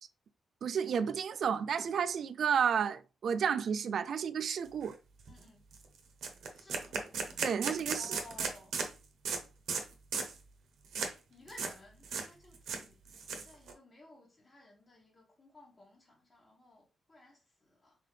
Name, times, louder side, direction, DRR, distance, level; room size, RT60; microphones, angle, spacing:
voice 1, 0.6-4.9 7.4-8.2, right 7 dB, 65° right, 0.4 m, -31 dB
sound 1, 4.8-4.9 5.3-5.4 5.7-5.8 6.2-8.9 9.2-9.4 9.7-9.8 10.1-10.4 10.9-11.1 11.5-11.7 12.0-12.3 12.5-13.7, right 5 dB, 80° right, 0.8 m, -36 dB
voice 2, 5.3-5.6 6.5-7.2 8.0-8.7 11.3-13.0 13.4-17.4 17.8-18.0, left 2 dB, 35° left, 1.3 m, -56 dB
3.8 x 3.7 x 3.3 m
cardioid pair, 75°, 0 cm